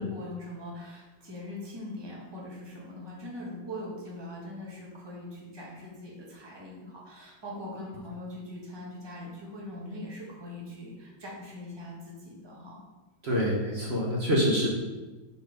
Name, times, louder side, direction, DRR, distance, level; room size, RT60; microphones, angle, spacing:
voice 1, 0.0-12.8, left 1 dB, 15° right, -4 dB, 1.2 m, -41 dB
voice 2, 13.2-14.7, equal, 40° right, -3 dB, 1.1 m, -26 dB
4.6 x 4.4 x 5.1 m, 1.2 s
omnidirectional pair, 2.0 m